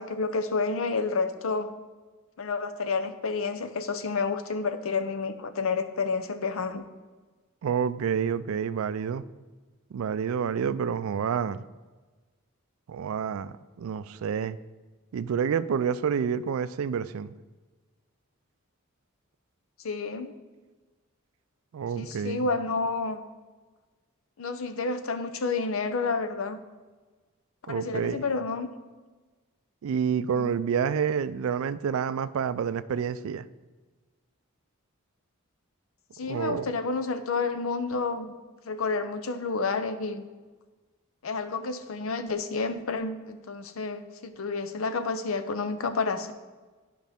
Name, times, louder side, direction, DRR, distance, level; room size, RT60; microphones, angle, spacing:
voice 1, 0.0-1.8 2.4-6.9 19.8-20.3 22.0-23.2 24.4-26.6 27.7-28.7 30.3-30.6 36.1-38.3 38.6-40.3 41.2-46.3, left 4 dB, 70° left, 9 dB, 0.6 m, -30 dB
voice 2, 7.6-9.2 9.9-11.6 12.9-14.6 15.1-17.3 21.7-22.5 27.7-28.2 29.8-33.4 36.3-36.7, right 7 dB, 75° right, 15 dB, 0.3 m, -28 dB
11.5 x 5.1 x 3.5 m, 1.3 s
head